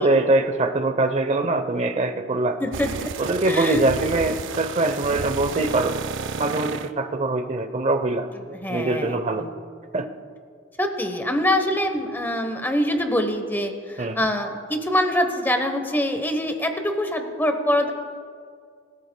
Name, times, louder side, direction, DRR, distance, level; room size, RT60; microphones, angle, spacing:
voice 1, 0.0-2.6 3.2-6.0 6.3-8.3 8.7-9.5 9.9-10.1 14.0-14.2, right 2 dB, 35° right, 8 dB, 0.8 m, -23 dB
voice 2, 2.6-3.1 3.5-3.8 8.5-9.6 10.8-17.9, left 1 dB, 10° left, 6 dB, 1.1 m, -24 dB
sound 1, 2.7-6.9, right 5 dB, 65° right, 0.5 m, -32 dB
23.0 x 13.5 x 2.3 m, 2.2 s
head